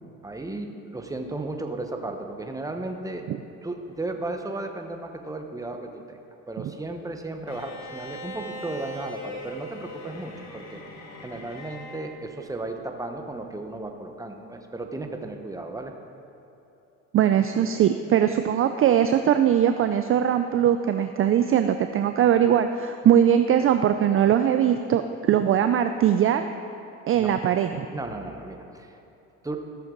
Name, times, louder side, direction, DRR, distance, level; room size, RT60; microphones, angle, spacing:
voice 1, 0.2-3.3 3.6-6.2 6.5-10.8 11.2-15.9 27.1-27.3 27.9-29.0 29.4-29.6, right 2 dB, 10° right, 4 dB, 1.1 m, -34 dB
Bowed string instrument, 7.5-12.1, left 1 dB, 50° left, 1.7 m, -40 dB
voice 2, 17.1-26.5 27.1-27.9, right 9 dB, 40° right, 8 dB, 0.4 m, -21 dB
14.5 x 7.0 x 3.9 m, 3.0 s
supercardioid pair, 85°, 36 cm